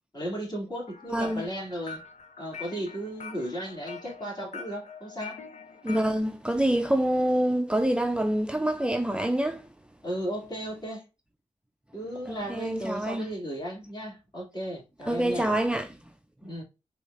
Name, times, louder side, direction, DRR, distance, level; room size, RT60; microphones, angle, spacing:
voice 1, 0.1-2.0 2.4-5.4 10.0-11.1 11.9-15.6 16.4-16.6, equal, 35° left, 2.6 m, -35 dB
sound 1, 0.9-6.2, left 5 dB, 70° left, 0.7 m, -44 dB
voice 2, 1.1-1.4 5.8-9.7 12.3-13.3 15.1-16.0, right 1 dB, 10° right, 0.4 m, -26 dB
4.7 x 3.1 x 2.5 m
cardioid pair, 45°, 12 cm